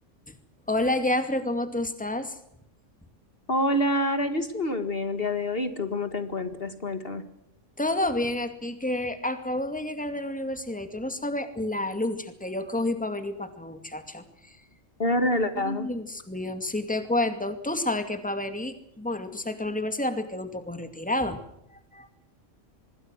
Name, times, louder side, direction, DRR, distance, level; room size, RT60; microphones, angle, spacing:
voice 1, 0.7-2.4 7.8-14.2 15.6-21.4 21.9-22.1, left 1 dB, 5° left, 8 dB, 2.3 m, -29 dB
voice 2, 3.5-7.2 15.0-15.9, left 1 dB, 50° left, 9 dB, 2.1 m, -27 dB
26.0 x 21.0 x 6.4 m, 0.78 s
omnidirectional pair, 1.3 m